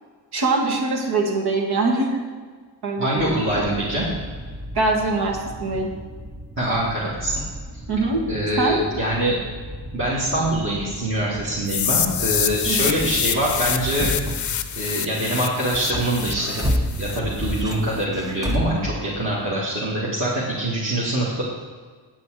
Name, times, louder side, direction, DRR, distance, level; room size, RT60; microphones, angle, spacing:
voice 1, 0.3-2.3 2.8-3.3 4.7-5.9 7.9-8.2 8.6-8.8 12.7-13.0, right 3 dB, 60° right, 1 dB, 2.0 m, -23 dB
voice 2, 3.0-4.1 6.6-7.4 8.3-9.4 9.9-14.1 14.8-16.6 17.0-21.4, right 1 dB, 30° right, -6 dB, 1.8 m, -24 dB
sound 1, 3.2-15.3 15.6-19.6, equal, 10° right, 0.6 m, -32 dB
sound 2, 11.7-17.6, left 9 dB, 45° left, 0.6 m, -26 dB
9.1 x 8.4 x 4.8 m, 1.5 s
wide cardioid pair, 170°, 43 cm